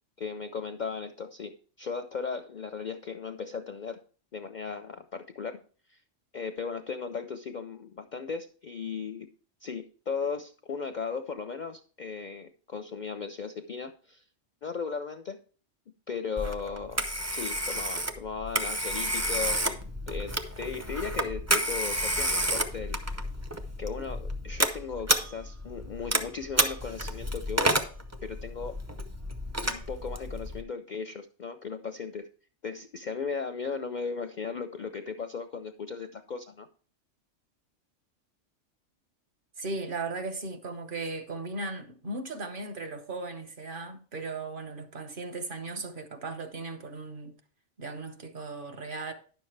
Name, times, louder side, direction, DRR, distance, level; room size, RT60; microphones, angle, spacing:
voice 1, 0.2-4.0 4.3-5.6 5.9-6.0 6.3-9.3 9.6-14.2 14.6-15.4 16.1-17.1 17.3-19.8 20.1-23.0 23.8-27.8 28.2-28.7 29.6-32.3 32.6-36.7, left 5 dB, 55° left, 0.5 m, -36 dB
Telephone, 16.4-30.6, right 1 dB, 20° right, 0.5 m, -30 dB
voice 2, 39.6-47.4 47.8-49.1, right 3 dB, 45° right, 1.0 m, -37 dB
10.5 x 6.8 x 3.3 m
omnidirectional pair, 1.3 m